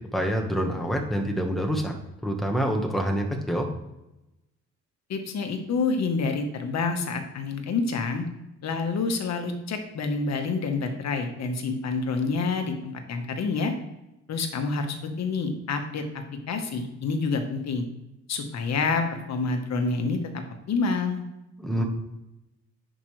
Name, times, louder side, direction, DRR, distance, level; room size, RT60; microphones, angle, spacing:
voice 1, 0.1-1.9 2.2-3.7 21.6-21.8, equal, ahead, 2 dB, 1.3 m, -26 dB
voice 2, 5.1-8.2 8.6-13.7 14.3-16.0 16.5-17.9 18.3-20.2 20.7-21.2, left 4 dB, 60° left, 5 dB, 1.4 m, -28 dB
10.5 x 5.2 x 3.3 m, 0.94 s
cardioid pair, 90°, 30 cm